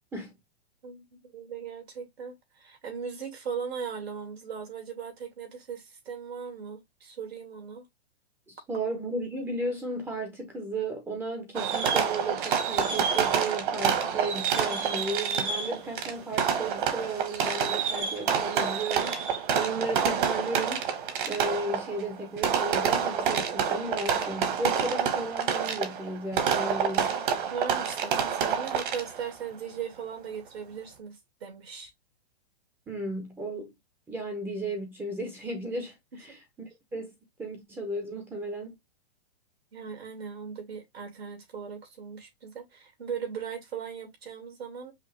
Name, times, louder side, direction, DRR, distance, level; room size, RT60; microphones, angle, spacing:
voice 1, 0.8-7.8 27.5-31.9 39.7-44.9, right 7 dB, 85° right, 2.5 m, -38 dB
voice 2, 8.5-20.9 21.3-27.1 32.9-33.7 34.1-37.1 37.4-38.7, right 2 dB, 5° right, 0.5 m, -34 dB
Fireworks, 11.5-29.3, right 7 dB, 55° right, 1.2 m, -28 dB
5.6 x 2.4 x 3.1 m
hypercardioid pair, 150°, 30 cm